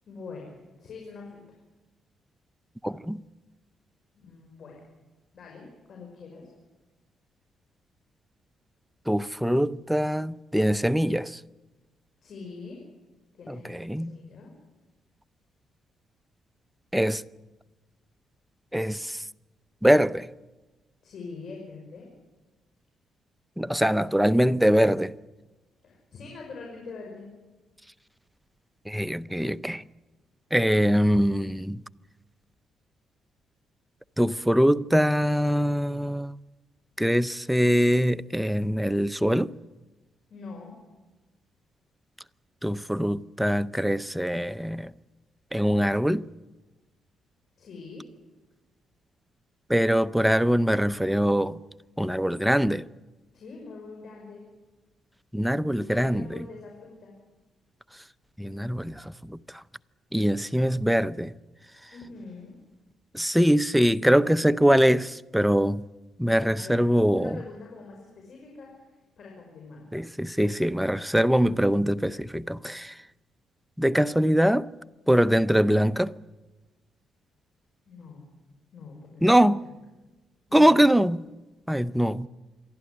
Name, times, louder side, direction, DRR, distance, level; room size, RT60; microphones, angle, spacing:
voice 1, 0.1-0.5 0.8-1.6 4.1-4.8 5.3-6.5 12.2-12.8 13.3-13.7 13.9-14.5 21.0-22.1 25.8-27.3 40.3-40.7 47.6-48.0 53.3-54.4 55.9-57.2 61.9-62.5 66.6-69.9 77.9-78.3 78.7-79.7 80.5-80.8, left 4 dB, 60° left, 5.7 m, -44 dB
voice 2, 2.8-3.2 9.1-11.4 13.5-14.2 16.9-17.2 18.7-19.2 19.8-20.3 23.6-25.1 28.9-29.8 30.5-31.8 34.2-36.4 37.0-39.5 42.6-44.9 45.5-46.3 49.7-51.6 52.0-52.8 55.3-56.4 58.4-59.4 60.1-61.3 63.1-65.8 66.2-67.4 69.9-72.9 73.8-74.7 75.1-76.1 79.2-79.6 80.5-81.2 81.7-82.3, equal, ahead, 0.6 m, -23 dB
26.5 x 11.5 x 9.8 m
cardioid pair, 90°, 0 cm